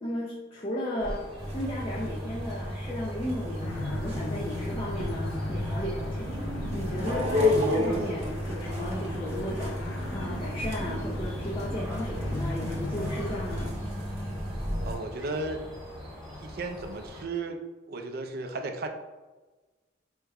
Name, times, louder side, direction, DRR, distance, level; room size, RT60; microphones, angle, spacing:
voice 1, 0.0-1.2 1.5-13.7, left 1 dB, 30° left, -5 dB, 0.5 m, -35 dB
sound 1, 1.0-17.2, equal, 5° left, 0.8 m, -42 dB
sound 2, 1.4-15.0, left 1 dB, 35° right, 0.8 m, -32 dB
sound 3, 3.6-13.7, left 2 dB, 85° left, 0.5 m, -38 dB
voice 2, 14.8-15.6 16.4-17.6 17.9-18.9, right 3 dB, 50° right, 5 dB, 0.4 m, -34 dB
4.7 x 2.1 x 3.4 m, 1.2 s
head